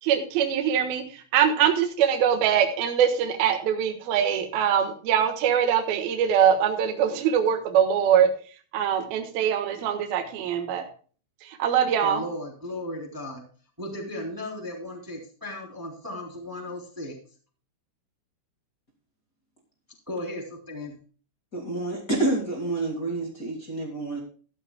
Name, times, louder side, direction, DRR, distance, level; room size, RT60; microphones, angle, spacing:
voice 1, 0.0-8.3 8.7-10.8 11.4-12.2, right 8 dB, 65° right, 5 dB, 2.6 m, -23 dB
voice 2, 11.8-13.4 13.8-17.2 20.1-21.0, left 1 dB, 5° right, 0 dB, 2.2 m, -36 dB
voice 3, 21.5-24.2, right 2 dB, 65° left, 0 dB, 0.8 m, -28 dB
15.0 x 13.0 x 2.3 m, 0.40 s
omnidirectional pair, 5.9 m